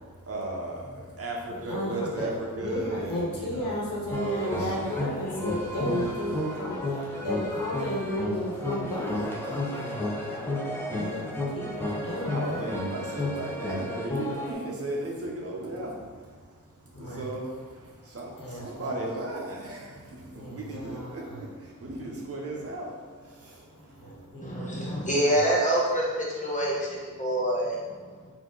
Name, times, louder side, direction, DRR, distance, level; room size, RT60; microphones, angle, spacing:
voice 1, 0.3-3.8 4.1-4.9 7.1-7.3 12.3-16.1 16.9-24.3, right 2 dB, 45° right, -2 dB, 0.9 m, -36 dB
voice 2, 1.5-10.4 10.9-12.8 16.9-17.4 18.3-18.9 20.3-21.5 24.0-25.5, equal, 85° left, -5 dB, 1.3 m, -34 dB
sound 1, 4.1-14.5, left 1 dB, 5° left, 0.7 m, -32 dB
voice 3, 24.4-27.8, right 1 dB, 25° left, -5 dB, 1.1 m, -26 dB
4.3 x 2.9 x 3.8 m, 1.5 s
wide cardioid pair, 110°, 32 cm